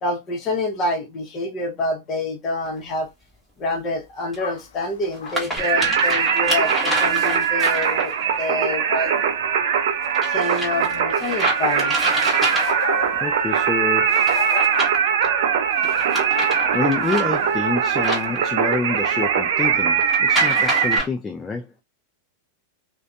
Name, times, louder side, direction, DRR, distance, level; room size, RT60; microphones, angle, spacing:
voice 1, 0.0-3.1 3.6-9.1 10.3-12.1, left 2 dB, 30° left, 0.9 m, -27 dB
sound 1, 2.6-2.7 4.3-4.4 5.0-8.2 10.1-13.1 14.1-15.3 15.8-18.9 20.0-21.1, right 1 dB, ahead, 1.2 m, -28 dB
sound 2, 4.2-8.2 8.5-9.8 10.1-10.5 10.9-11.0 11.3-15.3, left 7 dB, 80° left, 0.4 m, -37 dB
Singing, 5.6-21.0, right 7 dB, 75° right, 0.4 m, -21 dB
voice 2, 13.2-14.2 16.3-16.5 16.7-21.7, left 4 dB, 15° left, 0.3 m, -27 dB
2.5 x 2.2 x 2.4 m
hypercardioid pair, 125°, 0 cm